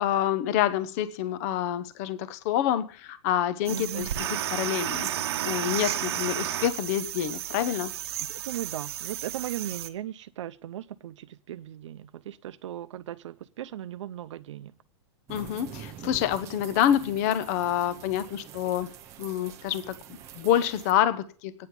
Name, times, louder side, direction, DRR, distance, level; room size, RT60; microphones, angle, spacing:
voice 1, 0.0-5.1 5.4-7.9 15.3-18.9 19.2-21.5, left 11 dB, 35° left, 0.6 m, -27 dB
sound 1, 3.7-9.9, right 11 dB, 60° right, 0.9 m, -32 dB
voice 2, 3.7-4.1 8.3-14.8, right 12 dB, 85° right, 0.6 m, -37 dB
sound 2, 15.3-20.9, right 10 dB, 20° right, 0.6 m, -45 dB
9.4 x 7.0 x 8.1 m
supercardioid pair, 175°, 15 cm